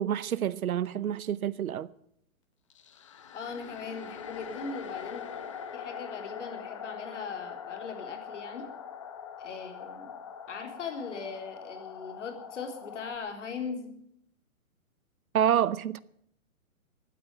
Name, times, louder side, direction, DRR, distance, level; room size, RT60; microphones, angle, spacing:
voice 1, 0.0-1.9 15.3-16.0, right 10 dB, 85° right, 0.8 m, -28 dB
sound 1, 2.7-13.2, left 7 dB, 20° left, 0.8 m, -43 dB
voice 2, 3.3-5.2 5.7-8.7 9.4-10.1 10.5-13.9, left 5 dB, 55° left, 3.8 m, -39 dB
15.5 x 9.7 x 8.9 m
hypercardioid pair, 170°, 42 cm